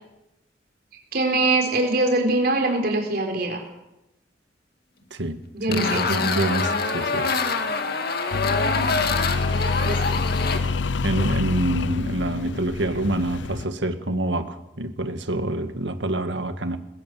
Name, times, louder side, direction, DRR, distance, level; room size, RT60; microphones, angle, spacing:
voice 1, 1.1-3.6 5.5-6.0 9.8-10.3, right 2 dB, 60° right, 3 dB, 4.1 m, -23 dB
sound 1, 5.7-10.6, left 4 dB, 60° left, 2.1 m, -25 dB
voice 2, 5.7-7.4 11.0-16.8, right 1 dB, 90° right, 9 dB, 1.9 m, -26 dB
sound 2, 8.3-13.7, left 3 dB, 85° left, 0.6 m, -27 dB
21.0 x 16.5 x 7.8 m, 0.92 s
head